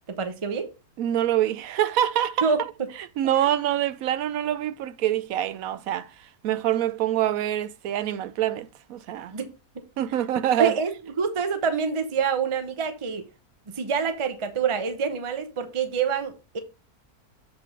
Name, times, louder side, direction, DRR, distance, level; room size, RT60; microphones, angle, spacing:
voice 1, 0.1-0.7 2.4-2.6 3.4-3.5 9.3-9.5 10.6-13.2 13.7-16.6, right 6 dB, 25° right, 0.7 m, -26 dB
voice 2, 1.0-2.5 3.2-6.1 6.4-9.3 10.0-10.8, right 11 dB, 70° right, 1.0 m, -25 dB
7.4 x 4.0 x 4.6 m
omnidirectional pair, 1.6 m